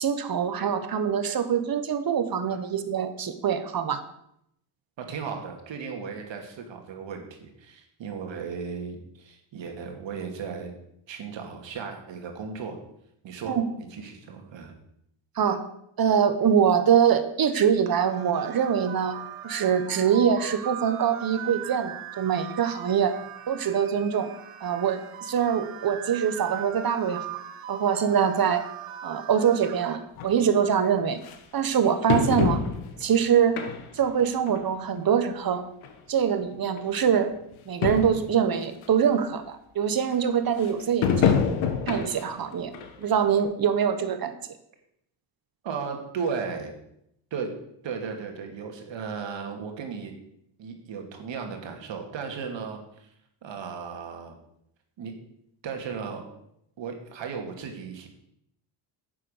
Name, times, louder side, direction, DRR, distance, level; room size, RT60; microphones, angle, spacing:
voice 1, 0.0-4.0 13.4-13.6 15.4-15.6 16.0-19.2 19.4-23.1 23.5-24.3 24.6-27.2 27.7-28.6 29.0-31.2 31.5-32.6 33.0-33.6 33.9-35.6 36.1-37.3 37.7-41.4 41.9-42.7 43.0-44.3, right 8 dB, 45° right, 10 dB, 1.4 m, -24 dB
voice 2, 5.0-10.7 11.1-12.8 13.2-14.8 45.6-46.7 47.3-47.5 47.8-50.1 50.6-53.1 53.4-54.4 55.0-55.1 55.6-56.3 56.8-58.1, right 6 dB, 60° right, 3 dB, 2.6 m, -35 dB
sound 1, 17.9-30.0, right 9 dB, 90° right, 1.5 m, -40 dB
sound 2, 30.2-30.3 31.2-31.3 32.1-33.0 33.6-34.1 34.5-34.6 35.5-35.6 35.8-35.9 36.8-36.9 37.2-37.3 37.5-37.6 37.8-38.3 38.8-38.9 41.0-42.3 42.7-42.9 43.4-43.5, left 7 dB, 80° left, 1.6 m, -25 dB
9.8 x 7.6 x 6.7 m, 0.76 s
cardioid pair, 115°, 49 cm